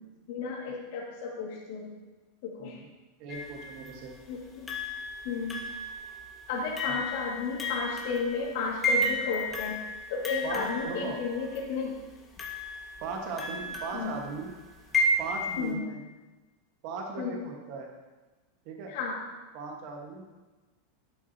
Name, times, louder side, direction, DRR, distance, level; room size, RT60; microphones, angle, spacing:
voice 1, 0.3-1.9 2.4-2.8 4.3-4.7 5.2-5.6 6.5-9.8 10.1-12.0 13.9-14.1 15.6-15.8 17.2-17.5 18.9-19.2, left 5 dB, 65° left, -1 dB, 2.0 m, -33 dB
voice 2, 3.2-4.1 6.9-7.0 10.4-11.2 13.0-14.5 15.2-16.0 16.8-17.9 18.6-18.9 19.5-20.3, right 4 dB, 50° right, 1 dB, 1.4 m, -38 dB
sound 1, 3.3-3.9 4.7-11.6 12.4-15.7, left 1 dB, 15° left, 1.3 m, -33 dB
11.5 x 6.1 x 2.8 m, 1.2 s
supercardioid pair, 155°, 0 cm